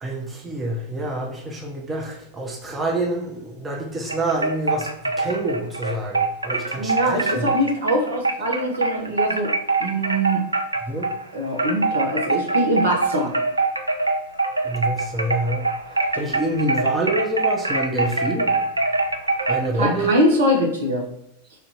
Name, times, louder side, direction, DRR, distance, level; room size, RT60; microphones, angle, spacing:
voice 1, 0.0-4.9 5.2-7.5 10.9-11.1 14.6-15.6 16.2-18.5 19.5-20.2, right 1 dB, 15° right, -1 dB, 0.8 m, -26 dB
sound 1, 4.1-11.2 11.6-19.7, right 3 dB, 80° right, 0.3 m, -24 dB
voice 2, 6.7-9.5 9.8-10.4 11.3-13.3 19.7-21.0, equal, 65° right, -1 dB, 1.1 m, -22 dB
3.4 x 2.7 x 4.1 m, 0.84 s
figure-of-eight pair, 90°, 0 cm